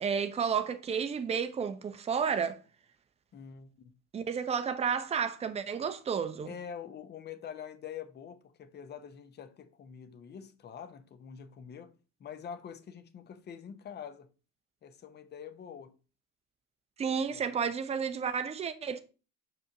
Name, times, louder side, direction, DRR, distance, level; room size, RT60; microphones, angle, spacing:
voice 1, 0.0-2.6 4.1-6.5 17.0-19.0, right 6 dB, 15° right, 0.6 m, -31 dB
voice 2, 3.3-4.0 6.5-14.3 14.8-15.9 17.3-17.4, left 8 dB, 20° left, 0.7 m, -45 dB
6.2 x 5.0 x 3.6 m
figure-of-eight pair, 70°, 46 cm